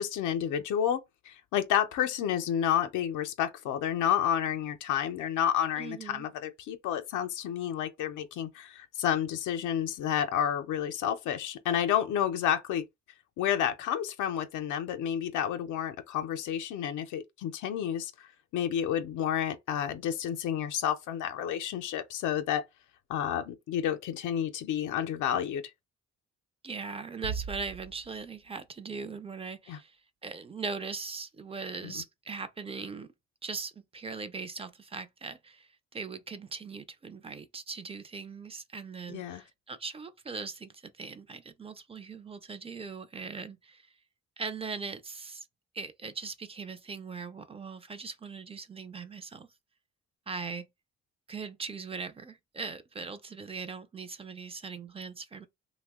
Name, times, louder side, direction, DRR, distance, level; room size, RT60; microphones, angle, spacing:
voice 1, 0.0-12.8 13.4-22.6 23.1-25.7 29.7-29.8 31.8-32.0 39.1-39.4, left 9 dB, 80° left, 0.5 m, -30 dB
voice 2, 5.8-6.3 26.6-30.0 30.2-33.1 33.4-43.9 44.4-45.5 45.7-49.5 50.3-50.7 51.3-55.5, right 4 dB, 20° right, 0.4 m, -40 dB
sound 1, 27.2-28.7, right 6 dB, 80° right, 0.5 m, -39 dB
2.7 x 2.1 x 3.5 m
cardioid pair, 90°, 30 cm